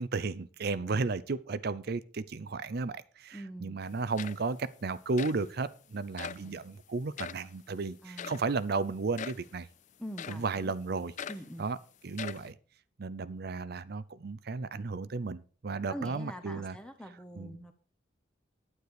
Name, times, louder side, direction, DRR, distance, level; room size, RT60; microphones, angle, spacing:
voice 1, 0.0-9.7 10.3-11.1 11.6-11.8 12.0-12.5 13.0-16.8 17.4-17.5, right 4 dB, 60° right, 0.6 m, -34 dB
voice 2, 3.3-3.8 6.4-6.6 8.0-8.4 10.0-10.7 11.3-11.7 15.9-17.7, equal, 5° left, 1.0 m, -44 dB
sound 1, 3.8-3.9 4.2-4.7 5.2-5.4 6.2-6.5 7.2-7.5 8.2-8.5 9.2-9.5 10.2-10.5 11.2-11.5 12.1-12.5, left 7 dB, 40° left, 0.4 m, -41 dB
9.7 x 9.5 x 4.9 m
head